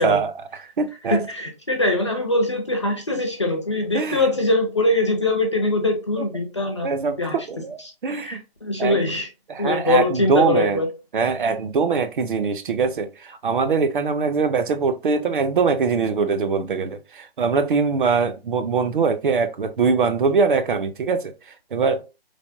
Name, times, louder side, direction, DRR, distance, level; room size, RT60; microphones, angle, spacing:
voice 1, 0.0-1.3 3.9-4.3 6.2-6.3 6.8-8.4 8.8-9.0 9.5-10.8 11.1-22.0, right 5 dB, 55° right, 0.5 m, -22 dB
voice 2, 1.1-6.9 7.2-7.4 8.2-9.3 9.6-10.9, left 2 dB, 30° left, 0.4 m, -22 dB
3.3 x 2.0 x 2.5 m
hypercardioid pair, 160°, 31 cm